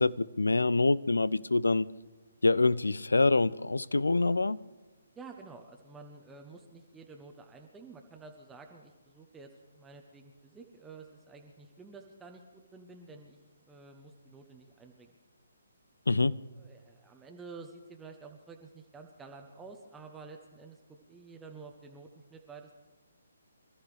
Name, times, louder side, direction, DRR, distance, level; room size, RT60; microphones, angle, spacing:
voice 1, 0.0-1.9 2.4-4.6 16.1-16.4, left 3 dB, 70° left, 0.4 m, -26 dB
voice 2, 5.2-13.4 13.7-15.1 16.5-22.8, right 4 dB, 10° right, 1.0 m, -50 dB
26.0 x 13.5 x 3.4 m
figure-of-eight pair, 135°, 0 cm